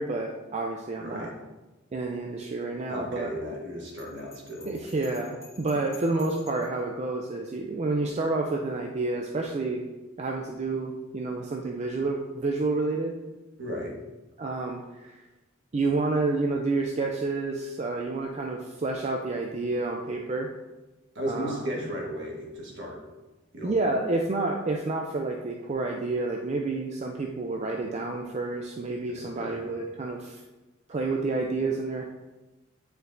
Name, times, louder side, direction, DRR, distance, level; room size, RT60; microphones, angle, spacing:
voice 1, 0.0-1.3 1.9-3.3 4.7-9.8 10.2-13.1 14.4-15.2 15.7-20.5 21.3-21.6 23.6-30.4 30.9-32.1, right 3 dB, 35° right, 1 dB, 0.4 m, -29 dB
voice 2, 1.0-1.3 2.9-4.8 13.6-14.0 21.1-23.0 23.5-23.8 29.1-29.6, equal, 60° right, -2 dB, 1.5 m, -35 dB
Bell, 3.8-6.8, left 3 dB, 15° left, 1.1 m, -51 dB
8.6 x 4.5 x 2.6 m, 1.1 s
head